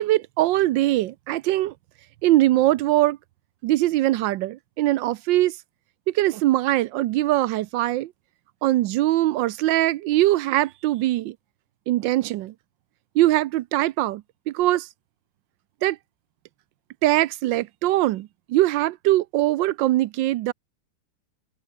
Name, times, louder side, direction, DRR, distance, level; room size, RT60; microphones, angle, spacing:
voice 1, 0.0-1.7 2.2-3.2 3.6-5.6 6.1-8.1 8.6-11.3 11.9-12.5 13.1-14.9 15.8-16.0 17.0-20.5, right 15 dB, 80° right, 1.3 m, -22 dB
open air
omnidirectional pair, 2.1 m